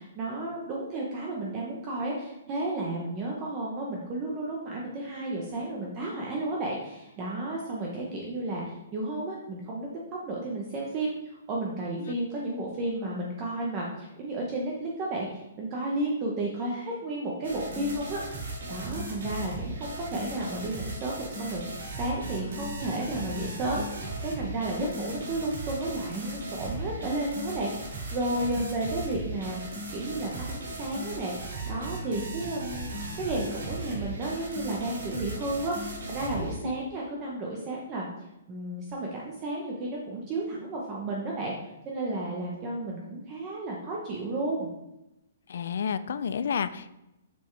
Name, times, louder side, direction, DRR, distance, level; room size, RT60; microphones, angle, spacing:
voice 1, 0.0-9.9 10.2-18.4 18.7-23.8 24.2-29.6 29.9-31.4 31.6-38.1 38.5-41.5 41.8-44.7, right 2 dB, 20° right, -3 dB, 0.9 m, -32 dB
sound 1, 17.4-36.6, right 1 dB, 75° right, 2.7 m, -37 dB
voice 2, 45.5-46.9, left 7 dB, 60° left, 14 dB, 0.4 m, -31 dB
6.9 x 6.3 x 3.3 m, 0.91 s
hypercardioid pair, 170°, 0 cm